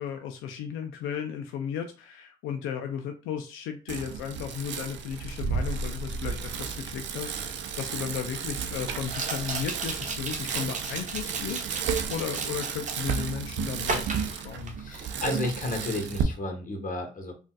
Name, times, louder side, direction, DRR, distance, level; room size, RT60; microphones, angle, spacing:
voice 1, 0.0-15.0, left 8 dB, 90° left, 6 dB, 0.4 m, -35 dB
Bicycle, 3.9-16.2, right 6 dB, 65° right, 0.5 m, -33 dB
sound 1, 7.4-7.5 9.1-13.3 13.8-15.1 15.4-15.8, right 3 dB, 40° right, 0.9 m, -35 dB
voice 2, 14.8-17.3, left 2 dB, 40° left, 3 dB, 1.3 m, -32 dB
3.8 x 2.4 x 2.3 m, 0.34 s
supercardioid pair, 65°, 20 cm